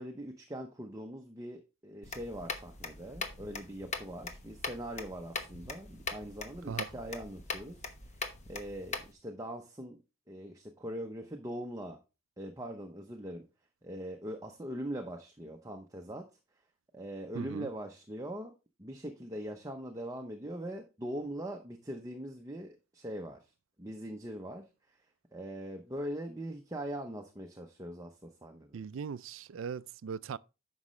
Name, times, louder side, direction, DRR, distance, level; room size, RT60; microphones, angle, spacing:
voice 1, 0.0-10.0 10.3-12.0 12.4-13.5 13.8-16.3 16.9-18.5 18.8-23.5 23.8-25.1 25.3-28.8, right 1 dB, 15° right, 0.8 m, -42 dB
sound 1, 2.0-9.1, left 4 dB, 35° left, 1.0 m, -41 dB
voice 2, 17.3-17.7 28.7-30.4, right 6 dB, 70° right, 0.4 m, -39 dB
9.5 x 6.3 x 3.2 m
head